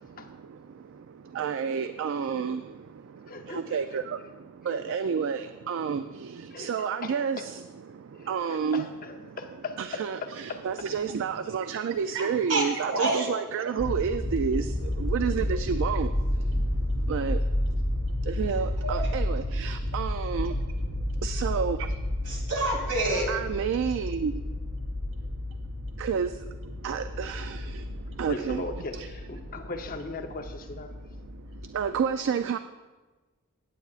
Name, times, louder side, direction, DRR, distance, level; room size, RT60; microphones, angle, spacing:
voice 1, 1.3-2.6 3.5-4.2 4.7-6.0 6.6-7.6 8.3-8.9 9.8-14.7 15.0-16.1 17.1-17.4 18.3-20.5 21.2-21.9 23.3-24.3 26.0-26.4 26.8-27.6 28.2-28.6 28.9-29.1 31.7-32.6, right 6 dB, 60° right, 10 dB, 0.3 m, -29 dB
voice 2, 3.3-3.8 4.7-5.0 6.5-7.4 8.2-10.0 10.5-10.6 28.3-30.9, left 3 dB, 40° left, 4 dB, 0.8 m, -38 dB
voice 3, 12.2-13.3 18.8-19.1 22.3-23.3, right 2 dB, 85° right, 0 dB, 2.7 m, -28 dB
sound 1, 13.8-31.8, left 1 dB, 15° left, 2.3 m, -31 dB
17.5 x 8.5 x 2.4 m, 1.2 s
head